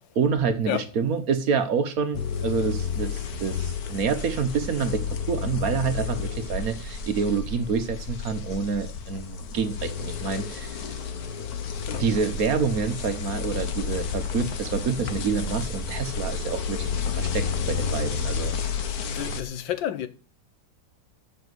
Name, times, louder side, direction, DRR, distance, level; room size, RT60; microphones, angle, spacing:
voice 1, 0.1-10.8 12.0-18.5, right 5 dB, 55° right, 1.3 m, -27 dB
sound 1, 2.1-19.4, left 6 dB, 60° left, 1.4 m, -31 dB
voice 2, 19.0-20.1, left 11 dB, 90° left, 1.7 m, -30 dB
7.4 x 6.5 x 7.9 m
omnidirectional pair, 2.0 m